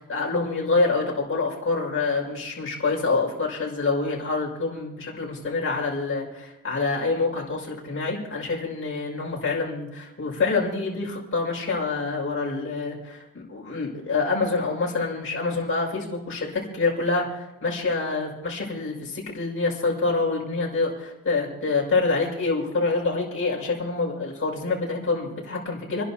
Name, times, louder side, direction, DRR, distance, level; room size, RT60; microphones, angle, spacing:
voice 1, 0.0-26.0, left 3 dB, 35° left, -3 dB, 5.6 m, -26 dB
29.5 x 11.0 x 2.9 m, 0.98 s
cardioid pair, 120°, 35 cm